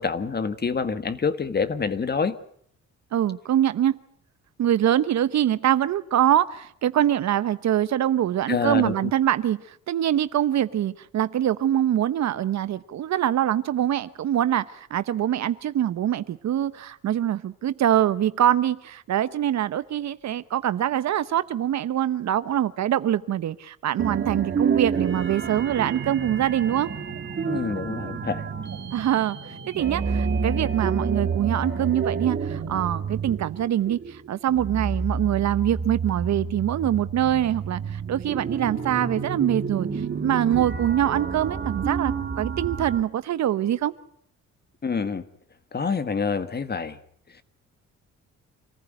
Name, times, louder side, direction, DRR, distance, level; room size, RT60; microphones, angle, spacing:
voice 1, 0.0-2.4 8.5-9.1 27.5-28.5 44.8-45.2 45.7-47.0, left 5 dB, 35° left, 1.7 m, -27 dB
voice 2, 3.1-4.0 4.6-26.9 28.9-29.4 29.7-43.9, right 11 dB, 65° right, 1.0 m, -24 dB
sound 1, 24.0-43.0, right 5 dB, 40° right, 2.4 m, -29 dB
27.0 x 15.0 x 9.1 m
cardioid pair, 90°, 30 cm